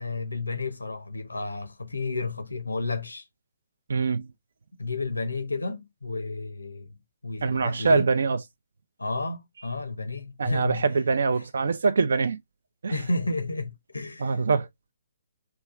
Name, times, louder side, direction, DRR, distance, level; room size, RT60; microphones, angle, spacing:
voice 1, 0.0-3.2 4.8-6.9 7.2-8.1 9.0-10.8 12.9-14.4, left 3 dB, 85° left, 0.7 m, -32 dB
voice 2, 3.9-4.3 7.4-8.4 10.4-12.4 12.8-13.0 14.2-14.7, right 4 dB, 65° right, 0.4 m, -24 dB
3.0 x 2.3 x 2.4 m
figure-of-eight pair, 135°, 0 cm